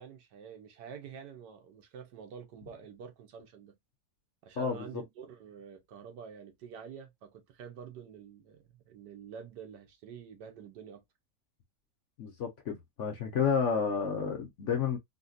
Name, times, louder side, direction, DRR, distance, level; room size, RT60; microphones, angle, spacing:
voice 1, 0.0-3.8 4.4-11.0, right 7 dB, 80° right, 1.5 m, -48 dB
voice 2, 4.6-4.9 12.2-15.0, left 6 dB, 55° left, 0.9 m, -30 dB
4.0 x 2.2 x 2.5 m
omnidirectional pair, 1.8 m